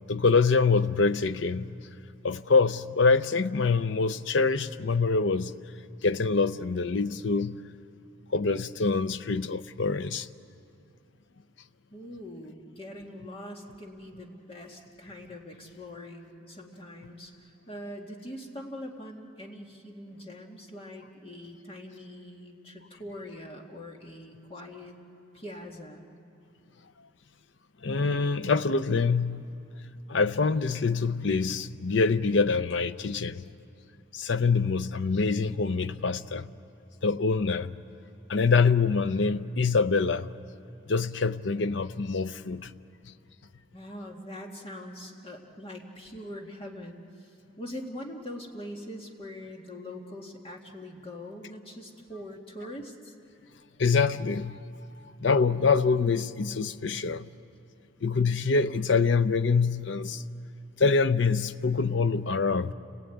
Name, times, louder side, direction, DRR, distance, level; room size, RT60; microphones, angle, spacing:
voice 1, 0.1-1.7 2.2-5.5 6.0-7.6 8.3-10.3 27.8-29.4 30.1-33.5 34.1-36.5 37.0-37.7 38.3-40.3 40.9-42.7 53.8-54.6 55.2-57.2 58.0-60.2 60.8-62.7, left 4 dB, 65° left, 0.6 m, -25 dB
voice 2, 11.9-17.3 17.7-24.9 25.3-26.1 43.7-47.0 47.6-53.1, left 1 dB, 30° left, 2.1 m, -42 dB
30.0 x 20.0 x 9.3 m
head